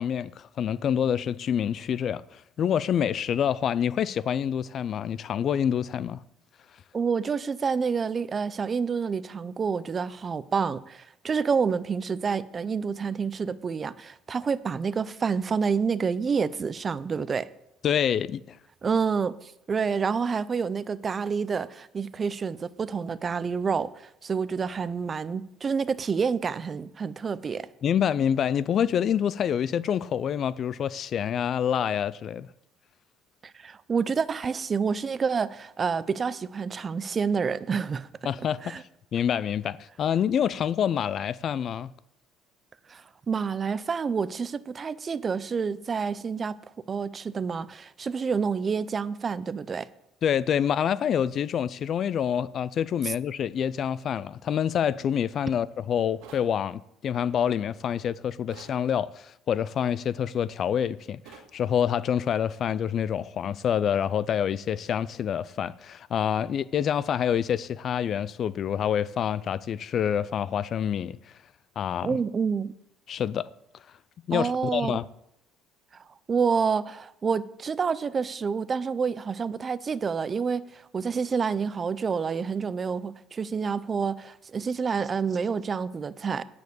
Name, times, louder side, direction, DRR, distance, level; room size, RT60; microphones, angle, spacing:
voice 1, 0.0-6.2 17.8-18.6 27.8-32.5 38.2-38.7 39.1-41.9 50.2-71.2 71.8-72.2 73.1-73.5 74.3-75.1, left 8 dB, 50° left, 0.4 m, -27 dB
voice 2, 6.9-17.5 18.8-27.7 33.4-38.1 38.6-38.8 42.9-46.6 46.9-49.9 53.0-53.1 72.0-72.7 74.3-75.0 76.3-86.4, right 5 dB, 30° right, 0.5 m, -28 dB
sound 1, 56.2-56.5 58.5-58.8 61.2-61.5, right 7 dB, 85° right, 1.8 m, -48 dB
9.3 x 5.2 x 7.8 m
cardioid pair, 105°, 0 cm